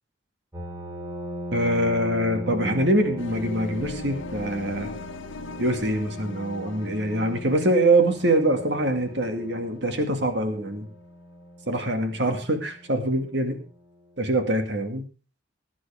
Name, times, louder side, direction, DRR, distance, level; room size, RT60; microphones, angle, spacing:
sound 1, 0.5-13.9, equal, 15° right, 3.1 m, -39 dB
voice 1, 1.5-4.9 5.6-10.9 11.7-13.6 14.2-15.0, right 1 dB, 65° right, 5 dB, 2.2 m, -24 dB
sound 2, 3.2-10.0, left 3 dB, 80° left, 1.1 m, -40 dB
20.0 x 10.0 x 3.6 m, 0.35 s
head